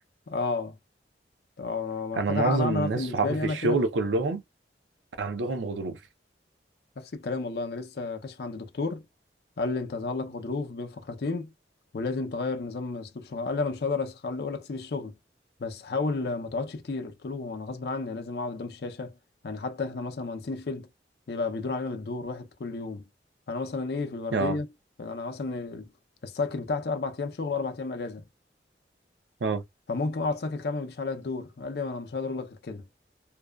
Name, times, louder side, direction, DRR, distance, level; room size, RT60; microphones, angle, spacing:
voice 1, 0.3-0.8 1.6-3.8 7.0-9.0 9.6-11.5 11.9-15.1 15.6-19.1 19.4-20.9 21.3-23.0 23.5-24.7 25.0-25.9 26.2-28.2 29.9-32.9, left 3 dB, 60° left, 0.5 m, -32 dB
voice 2, 2.1-4.4 5.2-6.0 24.3-24.6 29.4-29.6, right 3 dB, 90° right, 0.5 m, -27 dB
2.6 x 2.2 x 2.2 m
head